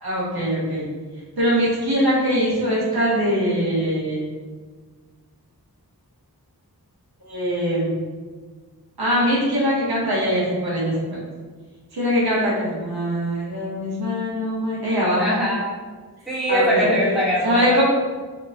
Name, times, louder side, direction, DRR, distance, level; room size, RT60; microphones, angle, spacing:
voice 1, 0.0-0.8 1.4-4.3 7.2-8.0 9.0-11.2 11.9-15.3 16.5-16.9 17.4-17.8, equal, 75° right, -6 dB, 1.2 m, -22 dB
voice 2, 15.2-15.7 16.3-17.8, equal, ahead, -8 dB, 1.4 m, -21 dB
3.5 x 2.5 x 3.5 m, 1.4 s
wide cardioid pair, 65°, 38 cm